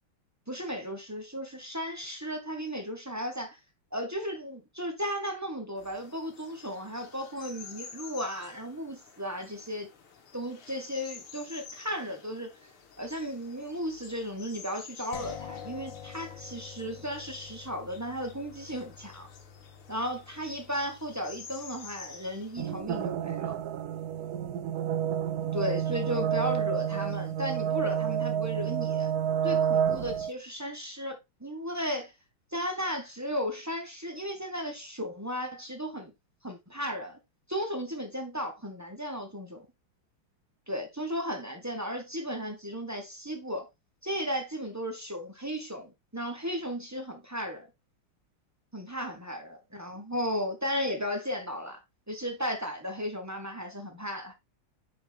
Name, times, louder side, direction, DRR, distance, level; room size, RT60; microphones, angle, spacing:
voice 1, 0.5-3.6 3.9-9.9 10.3-12.6 13.0-19.3 19.9-23.6 25.5-29.1 29.4-32.1 32.5-36.1 36.4-37.2 37.5-39.7 40.7-43.7 44.0-47.7 48.7-51.8 52.1-54.3, equal, 15° right, 0.7 m, -35 dB
sound 1, 5.8-22.6, left 5 dB, 90° left, 2.3 m, -50 dB
sound 2, 15.1-24.9, left 8 dB, 65° left, 1.6 m, -48 dB
sound 3, 22.6-30.3, right 9 dB, 90° right, 0.8 m, -29 dB
5.7 x 5.5 x 3.4 m
omnidirectional pair, 2.3 m